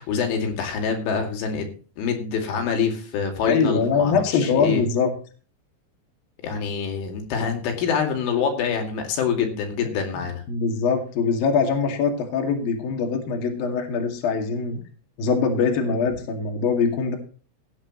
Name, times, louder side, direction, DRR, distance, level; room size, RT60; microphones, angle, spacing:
voice 1, 0.0-1.7 2.0-4.8 6.4-10.4, left 6 dB, 70° left, 4 dB, 4.7 m, -26 dB
voice 2, 3.4-5.1 9.4-9.5 10.5-14.8 15.2-17.2, left 5 dB, 55° left, 3 dB, 3.5 m, -23 dB
17.0 x 10.0 x 3.1 m, 0.38 s
omnidirectional pair, 6.0 m